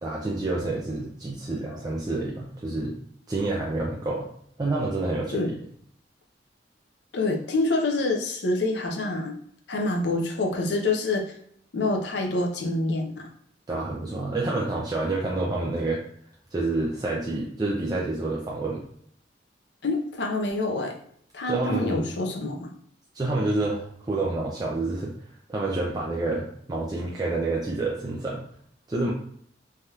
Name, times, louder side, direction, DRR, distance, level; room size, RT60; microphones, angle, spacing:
voice 1, 0.0-3.0 3.3-4.3 4.6-5.5 13.7-16.0 16.5-18.8 21.5-22.1 23.1-28.4 28.9-29.1, right 2 dB, 20° right, -4 dB, 0.4 m, -28 dB
voice 2, 7.1-9.4 9.7-11.2 11.7-13.3 19.8-20.9 21.3-22.7, left 2 dB, 70° left, 2 dB, 0.6 m, -26 dB
3.4 x 2.7 x 2.3 m, 0.66 s
head